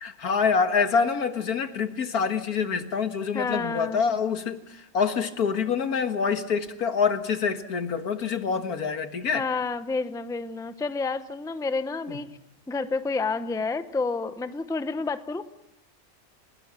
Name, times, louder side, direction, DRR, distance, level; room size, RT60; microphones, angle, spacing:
voice 1, 0.0-9.4 12.1-12.2, left 6 dB, 90° left, 9 dB, 2.1 m, -26 dB
voice 2, 3.3-4.0 9.3-12.3 12.7-15.4, left 4 dB, 5° left, 11 dB, 0.6 m, -29 dB
29.5 x 19.0 x 7.6 m, 0.82 s
omnidirectional pair, 1.5 m